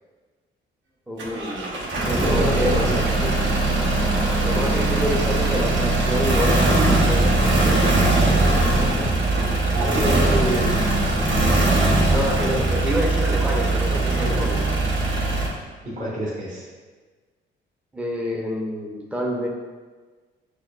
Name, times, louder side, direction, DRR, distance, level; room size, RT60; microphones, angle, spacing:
voice 1, 1.1-1.9 2.2-2.9 3.2-3.3 4.4-8.0 9.9-10.9 12.1-14.6 17.9-19.5, equal, 5° right, -1 dB, 0.6 m, -27 dB
sound 1, 1.2-15.5, right 2 dB, 70° right, 0.9 m, -20 dB
voice 2, 2.0-3.1 8.3-9.1 9.6-10.8 15.8-16.7, equal, 40° right, -7 dB, 1.1 m, -28 dB
6.2 x 2.3 x 2.2 m, 1.4 s
cardioid pair, 90°, 20 cm